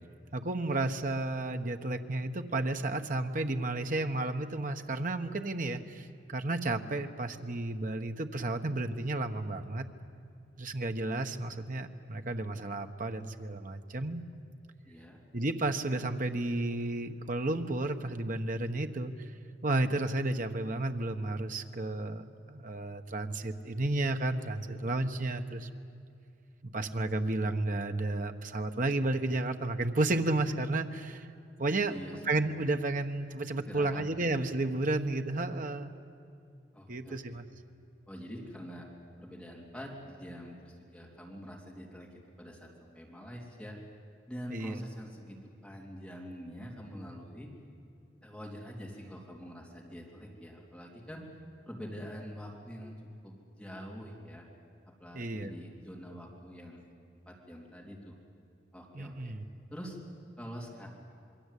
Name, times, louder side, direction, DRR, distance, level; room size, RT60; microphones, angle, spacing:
voice 1, 0.3-9.8 10.6-14.2 15.3-19.1 19.6-25.7 26.7-31.3 31.6-31.9 32.3-35.9 36.9-37.5 44.5-44.8 55.1-55.5 58.9-59.4, right 2 dB, 45° right, 7 dB, 1.2 m, -32 dB
voice 2, 14.8-15.2 31.9-32.2 33.7-34.3 36.7-37.4 38.1-38.9 39.2-42.1 42.4-43.8 44.3-47.5 48.2-51.3 51.7-53.0 53.2-54.4 55.0-56.9 57.2-58.1 58.7-59.3 59.7-60.0 60.4-60.9, equal, 5° left, -2 dB, 3.4 m, -45 dB
27.0 x 22.0 x 8.4 m, 2.5 s
head